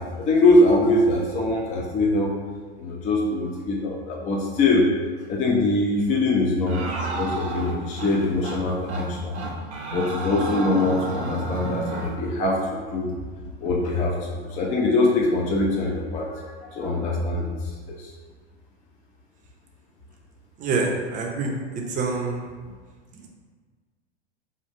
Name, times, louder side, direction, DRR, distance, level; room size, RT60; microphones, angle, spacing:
voice 1, 0.0-2.3 2.8-4.9 5.3-9.4 9.9-13.2 13.6-17.5 17.9-18.1, left 2 dB, 25° left, -2 dB, 0.4 m, -23 dB
sound 1, 6.7-8.1 8.4-8.6 8.9-9.1 9.3-12.1, right 2 dB, 80° right, 0.7 m, -31 dB
voice 2, 20.6-21.5 21.9-22.4 23.1-23.3, right 3 dB, 25° right, 0 dB, 0.6 m, -26 dB
3.0 x 2.3 x 4.2 m, 1.5 s
hypercardioid pair, 100°, 33 cm